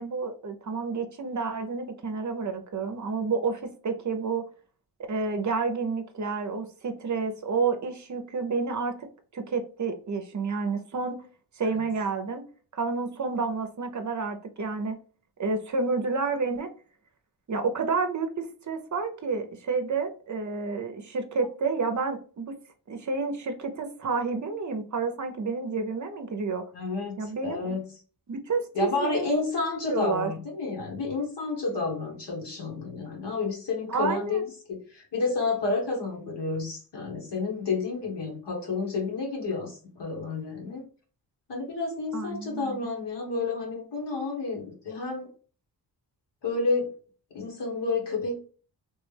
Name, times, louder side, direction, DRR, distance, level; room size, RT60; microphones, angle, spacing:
voice 1, 0.0-4.5 5.1-9.1 9.3-11.2 11.5-12.4 12.7-15.0 15.4-16.7 17.5-22.5 22.9-26.6 27.2-27.8 28.3-29.3 29.9-30.3 33.9-34.4 42.1-42.8, right 4 dB, 45° right, 6 dB, 0.6 m, -30 dB
voice 2, 26.7-27.8 28.7-40.8 41.5-45.3 46.4-46.9 47.3-48.4, left 3 dB, 80° left, -1 dB, 1.3 m, -30 dB
3.2 x 2.1 x 3.2 m, 0.41 s
wide cardioid pair, 100°, 41 cm